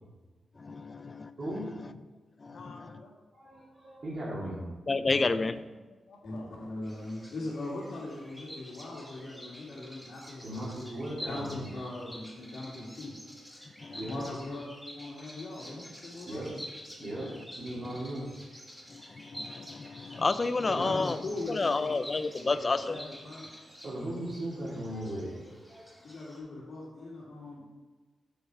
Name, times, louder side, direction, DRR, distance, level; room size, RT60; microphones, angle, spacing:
voice 1, 0.6-1.3 2.4-2.6 4.9-5.5 13.8-14.1 17.0-17.4 17.9-18.0 18.9-21.2 21.5-23.0, left 3 dB, 30° left, 13 dB, 0.4 m, -30 dB
voice 2, 1.4-1.7 3.3-4.7 10.4-11.6 13.9-14.2 15.1-15.2 16.2-16.5 17.0-17.3 17.6-18.6 20.7-20.9 23.8-25.9, right 1 dB, 40° right, -9 dB, 2.3 m, -38 dB
voice 3, 2.5-3.2 5.0-5.4 5.7-6.5 14.2-14.4 16.2-16.5, left 3 dB, 85° left, -1 dB, 1.9 m, -51 dB
voice 4, 6.7-11.0 11.3-13.2 13.9-16.3 20.7-21.9 22.4-23.5 26.0-27.7, left 2 dB, 60° left, -9 dB, 2.2 m, -40 dB
Bird vocalization bird call bird song, 6.8-26.4, equal, ahead, 1.6 m, -48 dB
7.2 x 6.4 x 4.7 m, 1.3 s
wide cardioid pair, 150°, 0 cm